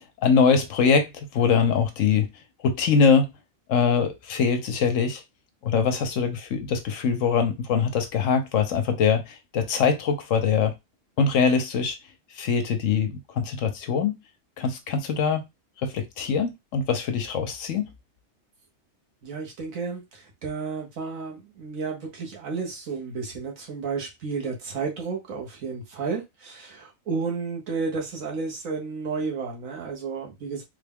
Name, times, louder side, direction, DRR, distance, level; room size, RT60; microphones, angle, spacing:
voice 1, 0.2-2.3 2.6-3.3 3.7-5.2 5.6-10.7 11.2-12.0 12.4-14.1 14.6-15.4 15.8-17.9, left 6 dB, 75° left, 1.1 m, -23 dB
voice 2, 19.2-30.6, right 4 dB, 85° right, 1.5 m, -32 dB
3.6 x 2.2 x 3.5 m
omnidirectional pair, 1.4 m